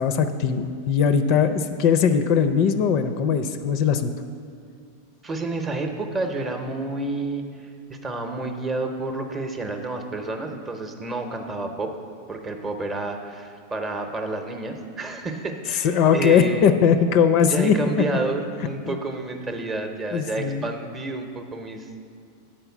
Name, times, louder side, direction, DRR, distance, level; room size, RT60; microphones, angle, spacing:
voice 1, 0.0-4.1 15.8-17.7 20.1-20.7, left 7 dB, 50° left, 9 dB, 0.4 m, -20 dB
voice 2, 5.2-11.9 12.3-16.7 17.4-22.0, right 2 dB, 20° right, 5 dB, 0.7 m, -30 dB
8.9 x 4.3 x 7.1 m, 2.2 s
supercardioid pair, 140°, 0 cm